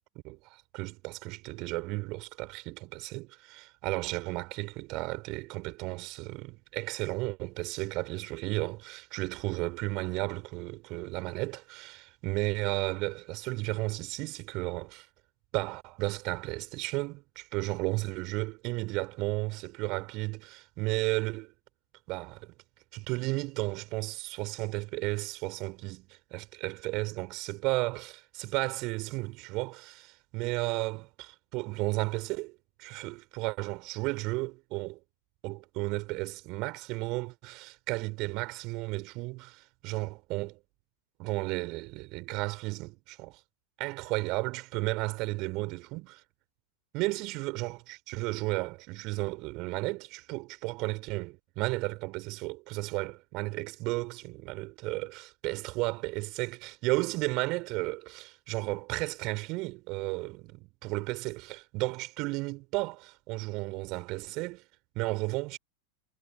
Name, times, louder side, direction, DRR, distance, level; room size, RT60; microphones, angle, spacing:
voice 1, 0.2-15.1 15.5-21.5 22.1-22.5 22.9-31.0 31.5-35.0 35.4-40.6 41.2-43.4 43.8-46.2 46.9-47.8 48.1-64.6 65.0-65.6, right 24 dB, 40° right, 5.2 m, -34 dB
figure-of-eight pair, 90°, 0 cm